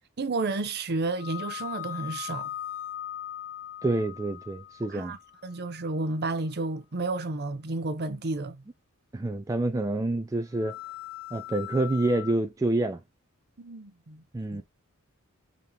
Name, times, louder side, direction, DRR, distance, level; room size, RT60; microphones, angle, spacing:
voice 1, 0.2-2.5 4.9-5.2 5.4-8.6 13.6-14.2 14.5-14.6, right 3 dB, 50° right, 0.7 m, -31 dB
sound 1, 1.2-5.6 10.5-12.3, left 12 dB, 70° left, 1.0 m, -39 dB
voice 2, 3.8-5.2 9.1-10.8 11.3-13.0 14.3-14.6, right 2 dB, 15° right, 0.3 m, -27 dB
5.2 x 2.9 x 2.2 m
head